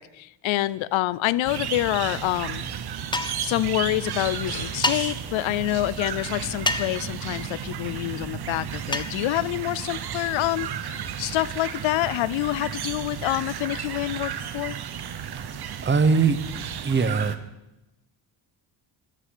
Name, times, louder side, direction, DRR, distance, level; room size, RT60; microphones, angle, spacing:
voice 1, 0.0-2.7 3.4-14.8, left 16 dB, 85° left, 20 dB, 0.6 m, -27 dB
sound 1, 1.4-17.4, right 8 dB, 55° right, 1.0 m, -33 dB
sound 2, 3.1-3.5 4.8-5.0 6.7-7.0 8.9-9.1, left 2 dB, 10° left, 0.7 m, -26 dB
sound 3, 4.2-5.3, left 2 dB, 30° left, 5.7 m, -44 dB
voice 2, 15.8-16.4 16.8-17.3, right 5 dB, 25° right, 12 dB, 0.8 m, -20 dB
14.0 x 6.6 x 9.9 m, 0.94 s
cardioid pair, 145°, 45 cm